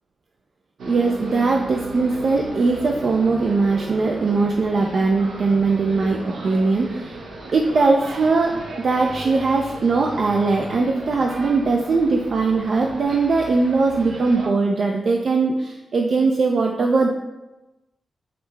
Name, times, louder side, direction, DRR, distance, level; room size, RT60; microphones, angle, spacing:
sound 1, 0.8-14.5, right 2 dB, 90° right, 0.7 m, -35 dB
voice 1, 0.9-7.2 7.5-17.1, right 3 dB, 55° right, 1 dB, 0.3 m, -20 dB
4.9 x 2.1 x 4.5 m, 1.0 s
wide cardioid pair, 115°, 0 cm